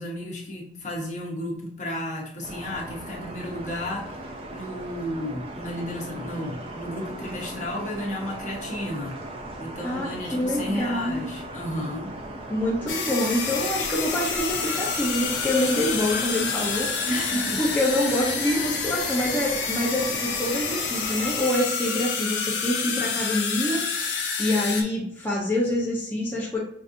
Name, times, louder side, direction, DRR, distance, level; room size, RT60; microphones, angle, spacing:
voice 1, 0.0-9.2 9.6-12.1 17.1-17.7, left 1 dB, 40° left, -2 dB, 1.0 m, -33 dB
sound 1, 2.4-21.4, right 1 dB, 30° right, 0.5 m, -38 dB
voice 2, 9.8-11.2 12.5-16.9 17.6-26.6, left 1 dB, 10° left, -6 dB, 0.6 m, -26 dB
sound 2, 12.9-24.8, left 5 dB, 70° left, 0.7 m, -28 dB
5.5 x 2.6 x 2.6 m, 0.71 s
head